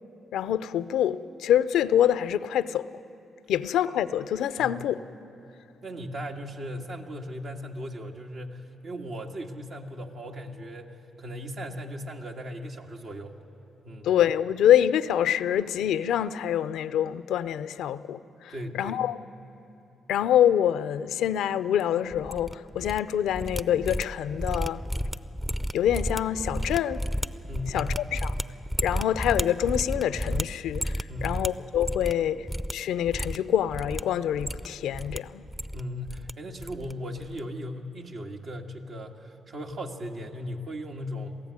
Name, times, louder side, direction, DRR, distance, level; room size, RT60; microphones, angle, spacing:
voice 1, 0.3-2.9 3.5-5.0 14.0-19.2 20.1-24.8 25.7-27.0 27.7-28.3 28.8-32.5 32.7-35.4, left 10 dB, 80° left, 0.5 m, -26 dB
voice 2, 5.8-13.4 13.8-14.1 18.5-19.0 24.9-25.1 27.5-28.0 31.1-31.3 35.7-41.4, equal, 65° right, 1.8 m, -37 dB
sound 1, 22.1-23.0 23.3-32.2 32.5-32.7 33.0-34.0 34.3-35.2 35.4-36.3 36.6-36.9 37.2-37.4, equal, 5° right, 0.6 m, -32 dB
22.0 x 15.0 x 9.6 m
supercardioid pair, 55°, 0 cm